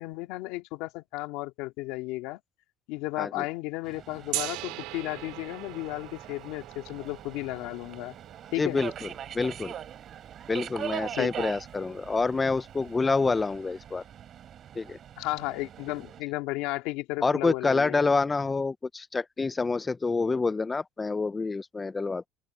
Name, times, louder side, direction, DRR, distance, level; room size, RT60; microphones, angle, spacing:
voice 1, 0.0-2.4 2.9-8.2 8.5-8.8 11.2-11.5 15.2-18.1, left 20 dB, 70° left, 2.2 m, -34 dB
Subway metro underground, 3.8-16.2, right 10 dB, 35° right, 7.1 m, -42 dB
Gong, 4.3-10.2, right 21 dB, 75° right, 1.9 m, -41 dB
voice 2, 8.6-9.1 9.3-9.7 10.5-14.0 14.8-15.0 17.2-22.3, left 4 dB, 15° left, 0.4 m, -27 dB
open air
cardioid pair, 150°, 0 cm